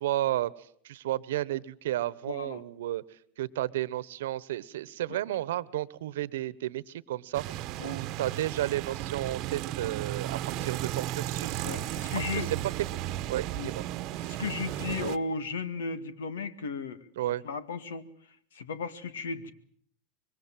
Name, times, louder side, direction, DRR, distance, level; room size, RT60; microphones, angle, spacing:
voice 1, 0.0-11.6 12.3-12.9 13.3-13.8 17.2-17.4, right 14 dB, 75° right, 20 dB, 1.1 m, -32 dB
voice 2, 2.3-2.6 5.1-5.2 7.8-8.0 10.5-10.7 11.6-12.5 13.6-13.7 14.2-17.1 17.4-18.1 18.5-19.5, left 4 dB, 85° left, 14 dB, 2.0 m, -35 dB
sound 1, 7.3-15.2, right 14 dB, 55° right, 1.1 m, -34 dB
25.5 x 23.0 x 7.6 m, 0.63 s
hypercardioid pair, 95°, 0 cm